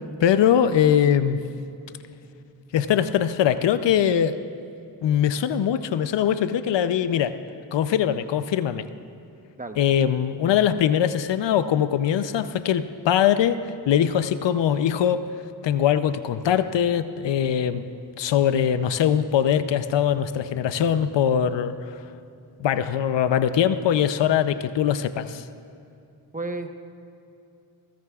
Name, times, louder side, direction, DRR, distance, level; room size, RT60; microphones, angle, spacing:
voice 1, 0.2-1.4 2.7-4.4 5.0-7.4 7.7-8.9 9.8-13.6 13.9-15.2 15.6-17.8 18.2-22.0 22.6-25.4, left 9 dB, 70° left, 11 dB, 0.7 m, -22 dB
voice 2, 26.3-26.7, right 2 dB, 20° right, 6 dB, 1.0 m, -31 dB
21.0 x 17.0 x 2.4 m, 2.7 s
cardioid pair, 75°, 44 cm